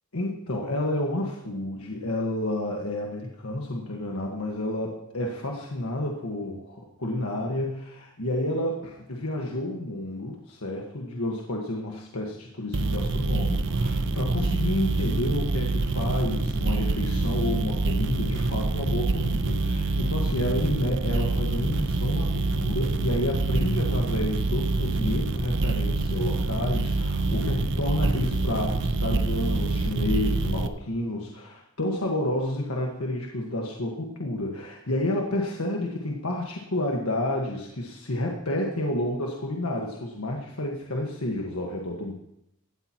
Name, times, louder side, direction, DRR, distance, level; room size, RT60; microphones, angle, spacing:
voice 1, 0.1-42.1, left 1 dB, 80° left, 0 dB, 1.5 m, -30 dB
sound 1, 12.7-30.7, right 2 dB, 60° right, 0.7 m, -26 dB
17.0 x 13.0 x 3.0 m, 0.81 s
head